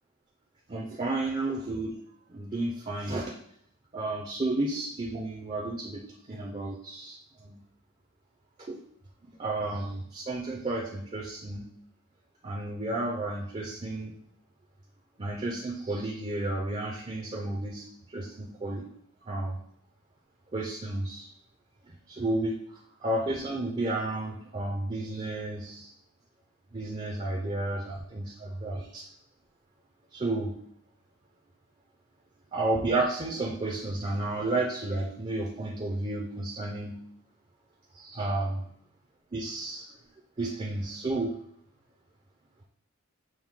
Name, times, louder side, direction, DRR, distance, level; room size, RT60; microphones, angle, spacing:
voice 1, 0.7-1.9 2.3-3.3 3.9-7.2 7.4-7.6 8.7-8.8 9.2-11.7 12.4-14.2 15.2-17.8 18.1-18.9 19.3-19.6 20.5-21.3 21.9-22.6 23.0-25.9 26.7-29.0 30.1-30.5 32.5-37.0 37.9-38.6 39.3-39.9 40.4-41.3, right 2 dB, 30° right, -1 dB, 0.5 m, -32 dB
6.2 x 2.2 x 3.6 m, 0.67 s
head